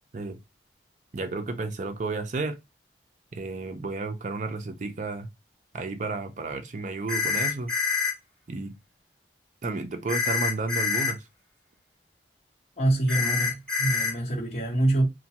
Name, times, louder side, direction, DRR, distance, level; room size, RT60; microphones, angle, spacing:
voice 1, 1.1-2.6 3.3-5.3 5.7-7.7 8.5-8.7 9.6-11.2, right 3 dB, 45° right, 0.5 m, -32 dB
sound 1, 7.1-8.1 10.1-11.1 13.1-14.1, left 5 dB, 5° left, 1.5 m, -26 dB
voice 2, 12.8-15.1, right 1 dB, 40° left, 0.9 m, -25 dB
3.0 x 2.2 x 2.9 m
head